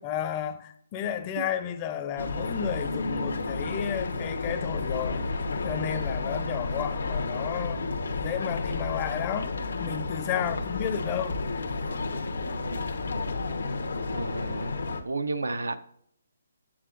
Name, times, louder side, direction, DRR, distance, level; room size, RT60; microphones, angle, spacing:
voice 1, 0.0-5.2 5.6-7.9 8.2-11.4, left 9 dB, 25° left, 0.6 m, -32 dB
sound 1, 2.2-15.0, left 3 dB, 80° left, 1.0 m, -31 dB
voice 2, 14.1-14.7 15.0-15.8, right 3 dB, 90° right, 0.7 m, -32 dB
8.6 x 7.2 x 2.5 m
hypercardioid pair, 150°, 0 cm